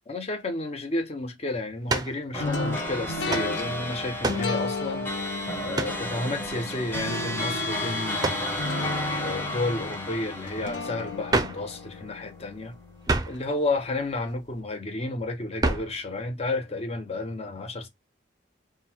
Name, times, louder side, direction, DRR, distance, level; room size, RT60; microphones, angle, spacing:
voice 1, 0.1-5.1 5.6-8.5 9.2-12.8 13.2-17.9, left 2 dB, 35° left, 0.7 m, -31 dB
sound 1, 1.9-2.2 3.3-3.5 4.2-4.5 5.7-6.0 8.2-8.5 11.3-11.7 13.0-13.4 15.6-16.0, right 2 dB, 20° right, 0.5 m, -27 dB
sound 2, 2.3-12.0, left 1 dB, 10° left, 1.0 m, -33 dB
sound 3, 2.4-13.4, left 3 dB, 70° left, 0.7 m, -35 dB
3.7 x 2.2 x 4.4 m
head